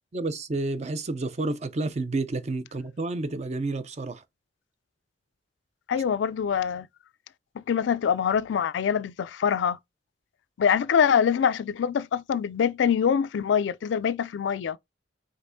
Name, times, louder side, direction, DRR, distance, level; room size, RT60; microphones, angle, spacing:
voice 1, 0.1-4.2, right 2 dB, 40° right, 0.5 m, -30 dB
voice 2, 5.9-6.9 7.6-9.8 10.6-14.8, left 7 dB, 90° left, 0.3 m, -24 dB
5.2 x 3.5 x 2.6 m
head